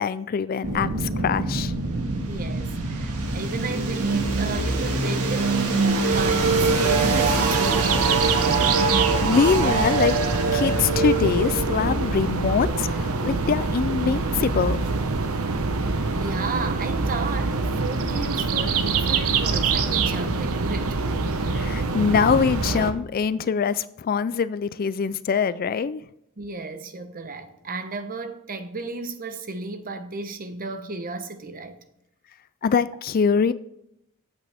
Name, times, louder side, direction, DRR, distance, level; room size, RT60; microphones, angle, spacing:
voice 1, 0.0-1.7 9.2-10.2 10.5-14.8 21.5-26.0 32.6-33.5, left 6 dB, 40° left, 0.3 m, -23 dB
sound 1, 0.6-13.5, right 3 dB, 85° right, 1.8 m, -24 dB
voice 2, 2.3-8.2 16.1-21.0 21.8-21.9 26.4-31.8, right 3 dB, 40° right, 0.9 m, -34 dB
sound 2, 6.1-22.9, right 4 dB, 70° right, 0.9 m, -25 dB
14.0 x 8.3 x 3.5 m
head